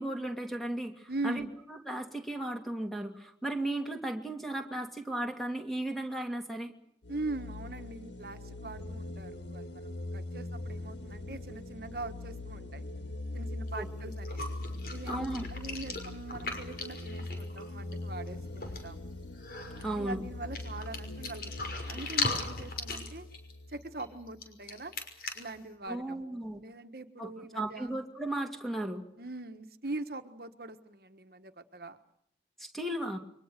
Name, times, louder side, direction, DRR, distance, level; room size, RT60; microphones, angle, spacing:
voice 1, 0.0-1.4 1.9-6.7 13.7-13.9 15.1-15.5 19.8-20.2 25.9-26.6 27.2-29.0 32.6-33.2, right 1 dB, ahead, 4 dB, 2.5 m, -35 dB
voice 2, 1.1-1.5 7.1-12.8 13.3-14.6 14.9-19.1 19.7-23.3 23.7-24.9 25.3-27.9 29.2-32.0, right 2 dB, 55° right, 8 dB, 1.4 m, -42 dB
sound 1, 7.0-24.4, left 2 dB, 85° left, 1.6 m, -42 dB
sound 2, 13.7-13.8 14.1-17.9 18.3-18.4 18.6-19.0 19.3-19.9 20.5-25.5, left 3 dB, 55° left, 5.9 m, -38 dB
29.0 x 24.0 x 6.7 m, 0.69 s
head